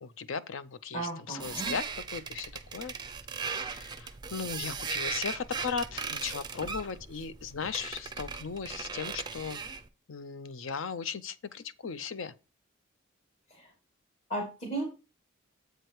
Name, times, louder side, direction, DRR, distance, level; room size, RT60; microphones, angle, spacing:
voice 1, 0.0-2.9 3.6-9.6 10.1-12.3, left 6 dB, 70° left, 0.6 m, -37 dB
voice 2, 0.9-1.7 13.5-13.7 14.3-14.9, right 2 dB, 35° left, 2.1 m, -35 dB
sound 1, 1.4-9.9, right 5 dB, 20° right, 0.5 m, -38 dB
7.9 x 4.8 x 4.6 m
head